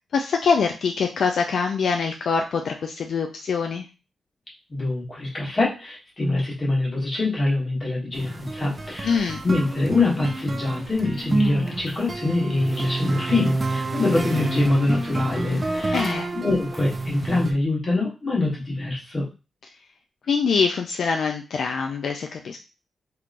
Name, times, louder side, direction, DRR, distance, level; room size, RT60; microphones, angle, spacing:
voice 1, 0.1-3.8 9.0-9.4 15.9-16.3 20.3-22.6, left 5 dB, 70° left, 3 dB, 0.3 m, -24 dB
voice 2, 4.7-16.0 16.3-19.2, left 2 dB, 30° left, -3 dB, 1.2 m, -24 dB
sound 1, 8.1-17.5, right 2 dB, 20° right, 0.4 m, -29 dB
3.6 x 2.9 x 2.4 m, 0.31 s
wide cardioid pair, 145°, 0 cm